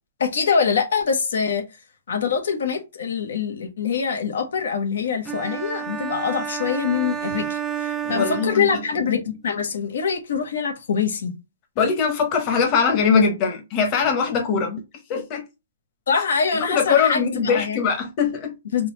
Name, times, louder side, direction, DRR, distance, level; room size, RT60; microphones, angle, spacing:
voice 1, 0.2-1.6 2.1-11.3 16.1-17.8 18.7-18.9, left 6 dB, 75° left, 1.1 m, -24 dB
sound 1, 5.3-9.1, right 8 dB, 15° right, 0.4 m, -30 dB
voice 2, 8.0-8.7 11.8-14.8 15.1-15.4 16.7-18.5, left 6 dB, 30° left, 1.1 m, -21 dB
3.8 x 2.9 x 3.1 m
hypercardioid pair, 150°, 0 cm